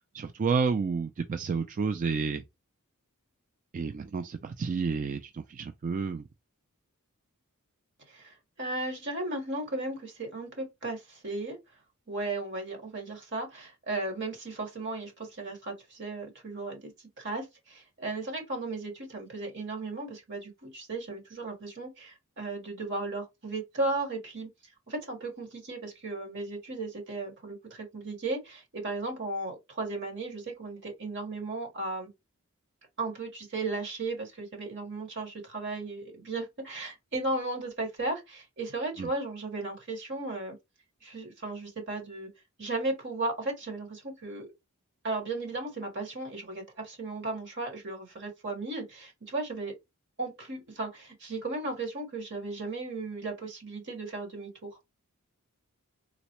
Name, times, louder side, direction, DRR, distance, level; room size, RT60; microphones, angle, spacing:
voice 1, 0.1-2.4 3.7-6.3 39.0-39.1, right 5 dB, 35° right, 0.3 m, -30 dB
voice 2, 8.1-11.6 12.1-16.9 17.2-24.5 24.9-32.1 33.0-40.6 41.0-42.3 42.6-44.5 45.0-49.7 50.2-54.8, right 2 dB, 55° right, 1.6 m, -35 dB
3.9 x 2.1 x 2.9 m
head